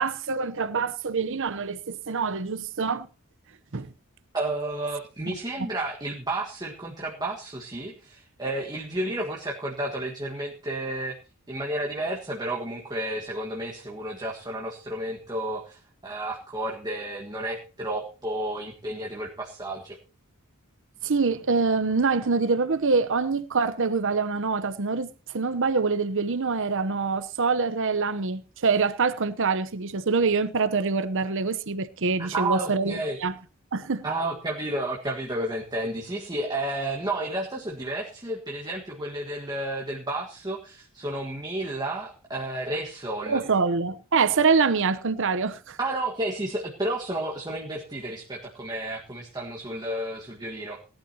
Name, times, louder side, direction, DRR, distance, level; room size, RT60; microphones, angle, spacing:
voice 1, 0.0-3.1 3.7-3.9 5.3-5.4 21.0-33.3 33.7-34.1 43.3-45.8, right 4 dB, 65° right, 0.8 m, -25 dB
voice 2, 4.3-11.2 11.5-20.0 32.2-33.2 34.0-43.4 45.8-50.8, right 1 dB, 20° right, 1.6 m, -31 dB
18.0 x 11.5 x 2.9 m
head